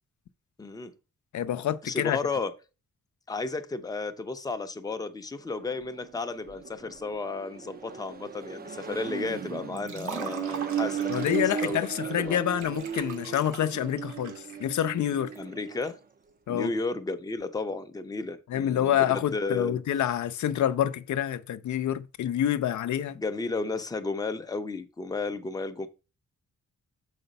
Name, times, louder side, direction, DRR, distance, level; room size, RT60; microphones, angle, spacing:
voice 1, 0.6-0.9 1.8-2.5 3.3-11.1 11.4-11.8 12.2-12.4 15.4-16.0 16.5-19.8 23.1-25.9, left 3 dB, 15° left, 0.6 m, -33 dB
voice 2, 1.3-2.2 11.1-15.3 16.5-16.7 18.5-23.2, left 11 dB, 75° left, 0.6 m, -27 dB
Accelerating revving vroom, 5.5-16.0, right 8 dB, 30° right, 0.5 m, -36 dB
Liquid, 9.8-15.9, right 6 dB, 85° right, 1.6 m, -43 dB
6.8 x 5.0 x 5.2 m
wide cardioid pair, 170°, 30 cm